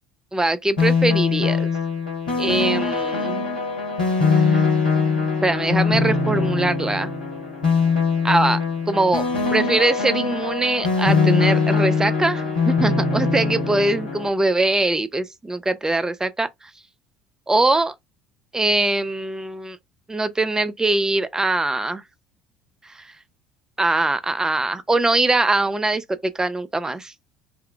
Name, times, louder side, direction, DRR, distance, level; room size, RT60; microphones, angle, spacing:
voice 1, 0.3-1.7 2.4-3.4 4.4-4.6 5.4-7.1 8.2-8.6 8.9-9.2 9.5-16.5 17.5-17.9 18.5-19.8 20.1-22.0 23.8-27.1, right 2 dB, 15° right, 0.6 m, -22 dB
sound 1, 0.8-14.3, left 4 dB, 85° left, 1.3 m, -22 dB
3.6 x 2.2 x 3.4 m
figure-of-eight pair, 60°, 4 cm